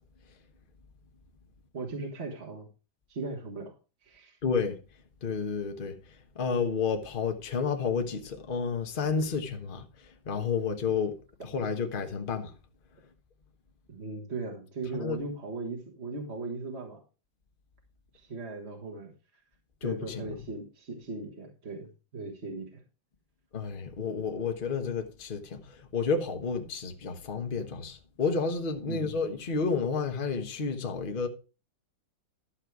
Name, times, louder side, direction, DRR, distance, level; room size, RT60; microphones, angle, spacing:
voice 1, 1.7-2.7 3.1-3.7 4.0-4.4 13.9-17.0 18.1-19.1 19.8-22.8 28.9-29.1, right 3 dB, 40° right, 1.7 m, -38 dB
voice 2, 4.4-4.8 5.2-11.2 11.4-12.5 14.9-15.2 19.8-20.4 23.5-31.3, left 5 dB, 30° left, 1.2 m, -31 dB
12.0 x 6.6 x 4.7 m
omnidirectional pair, 2.0 m